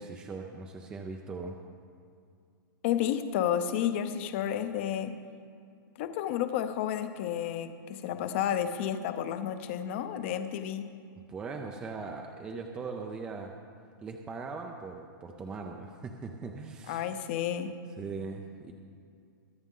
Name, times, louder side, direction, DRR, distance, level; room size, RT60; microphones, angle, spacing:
voice 1, 0.0-1.6 11.3-13.6 14.0-17.1 18.0-18.7, right 4 dB, 10° right, 3 dB, 0.4 m, -40 dB
voice 2, 2.8-5.1 6.0-10.9 16.9-17.8, left 10 dB, 35° left, 10 dB, 0.7 m, -31 dB
23.0 x 8.1 x 3.8 m, 2.3 s
hypercardioid pair, 170°, 12 cm